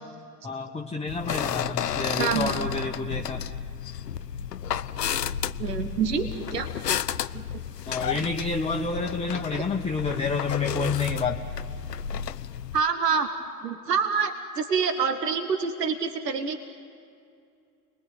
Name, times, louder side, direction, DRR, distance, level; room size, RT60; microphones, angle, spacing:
voice 1, 0.4-3.5 7.9-11.4, left 4 dB, 15° left, 1 dB, 1.3 m, -29 dB
sound 1, 1.1-12.8, left 8 dB, 85° left, 0.6 m, -32 dB
voice 2, 2.2-2.5 5.6-6.7 7.3-7.4 9.5-9.6 12.7-13.3 13.6-16.6, right 6 dB, 80° right, 8 dB, 1.5 m, -26 dB
29.5 x 20.5 x 9.2 m, 2.4 s
figure-of-eight pair, 70°, 48 cm